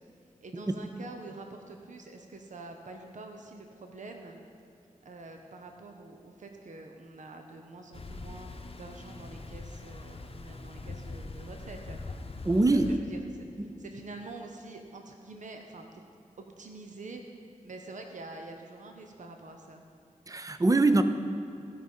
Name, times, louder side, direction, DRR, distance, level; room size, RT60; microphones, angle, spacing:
voice 1, 0.4-4.4 5.0-12.0 12.7-13.2 13.6-16.0 16.4-17.2 17.6-19.8, right 3 dB, 65° right, 4 dB, 0.9 m, -46 dB
sound 1, 7.9-13.0, left 3 dB, 45° left, 0.8 m, -42 dB
voice 2, 12.4-12.9 20.3-21.0, right 2 dB, 25° right, 9 dB, 0.6 m, -23 dB
15.0 x 5.1 x 5.4 m, 2.6 s
cardioid pair, 55°, 13 cm